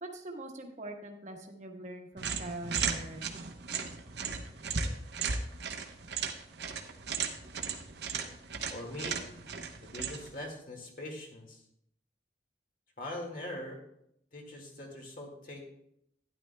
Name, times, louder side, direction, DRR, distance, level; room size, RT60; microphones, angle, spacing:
voice 1, 0.0-3.2, right 1 dB, 40° right, 3 dB, 1.1 m, -43 dB
sound 1, 2.2-10.4, right 5 dB, 75° right, 0.8 m, -36 dB
voice 2, 8.7-9.2 9.8-11.6 13.0-13.8 14.3-15.6, left 1 dB, 50° left, 1 dB, 1.9 m, -42 dB
12.5 x 10.0 x 2.2 m, 0.75 s
head